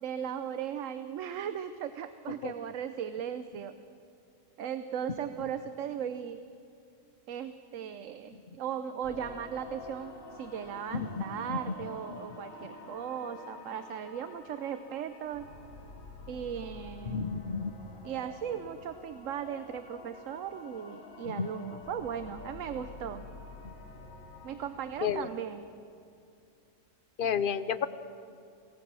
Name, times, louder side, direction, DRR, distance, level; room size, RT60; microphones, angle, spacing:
voice 1, 0.0-3.7 4.6-6.4 7.3-15.5 16.3-17.3 18.0-23.3 24.4-25.7, right 8 dB, 75° right, 10 dB, 1.1 m, -37 dB
sound 1, 9.0-25.2, left 3 dB, 80° left, 2.3 m, -48 dB
voice 2, 10.9-11.6 12.1-12.2 17.1-17.7 21.3-21.5 25.0-25.3 27.2-27.9, left 7 dB, 50° left, 13 dB, 0.8 m, -31 dB
25.0 x 18.0 x 6.2 m, 2.5 s
omnidirectional pair, 1.4 m